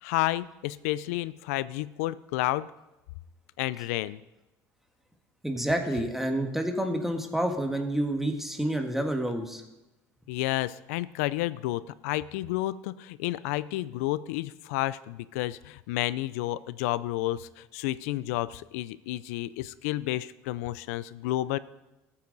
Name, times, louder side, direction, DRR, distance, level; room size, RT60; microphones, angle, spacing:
voice 1, 0.0-2.7 3.6-4.2 10.3-21.6, left 16 dB, 90° left, 17 dB, 0.4 m, -31 dB
voice 2, 5.4-9.6, right 1 dB, 5° right, 4 dB, 1.5 m, -29 dB
14.0 x 8.7 x 4.0 m, 1.0 s
supercardioid pair, 105°, 8 cm